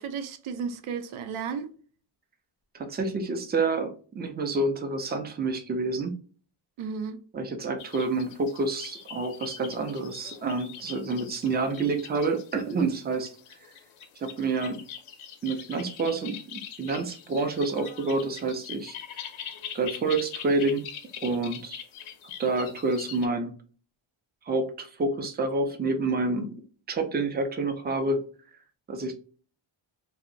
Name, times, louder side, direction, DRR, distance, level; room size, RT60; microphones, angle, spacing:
voice 1, 0.0-1.7 6.8-7.2, right 6 dB, 80° right, 0.6 m, -33 dB
voice 2, 2.7-6.2 7.3-13.3 14.2-14.8 15.4-19.0 19.7-20.8 21.2-21.8 22.4-23.5 24.5-26.5 26.9-28.2 28.9-29.2, right 3 dB, 25° right, 0.3 m, -28 dB
sound 1, 7.8-23.3, left 8 dB, 80° left, 0.6 m, -43 dB
2.6 x 2.0 x 2.5 m
wide cardioid pair, 135°, 49 cm